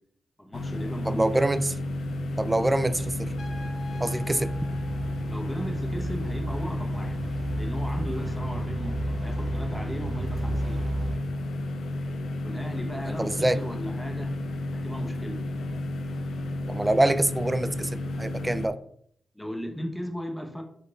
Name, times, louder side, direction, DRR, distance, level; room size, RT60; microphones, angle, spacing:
voice 1, 0.4-1.4 5.3-10.9 12.4-14.3 14.7-15.4 19.3-20.6, equal, 5° left, 2 dB, 0.9 m, -37 dB
sound 1, 0.5-18.7, left 1 dB, 80° left, 0.4 m, -32 dB
voice 2, 1.1-1.7 2.4-3.3 4.0-4.5 13.1-13.6 16.7-18.8, right 1 dB, 15° right, 12 dB, 0.3 m, -25 dB
sound 2, 1.8-11.2, right 2 dB, 45° right, 0.7 m, -35 dB
Trumpet, 3.4-6.0, left 2 dB, 50° left, 1.1 m, -47 dB
5.1 x 3.9 x 2.3 m, 0.66 s
cardioid pair, 70°, 0 cm